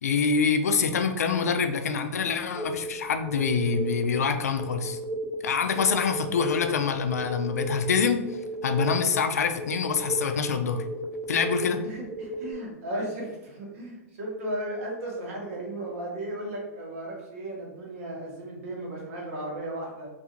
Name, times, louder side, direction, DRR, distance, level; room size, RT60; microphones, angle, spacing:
voice 1, 0.0-5.0 5.4-8.2 8.6-10.8 11.3-11.8, left 5 dB, 90° left, 7 dB, 0.4 m, -25 dB
sound 1, 2.5-12.5, right 1 dB, 10° right, 0.6 m, -34 dB
voice 2, 11.7-20.1, right 1 dB, 65° right, -2 dB, 1.1 m, -35 dB
2.6 x 2.4 x 2.9 m, 0.97 s
hypercardioid pair, 115°, 8 cm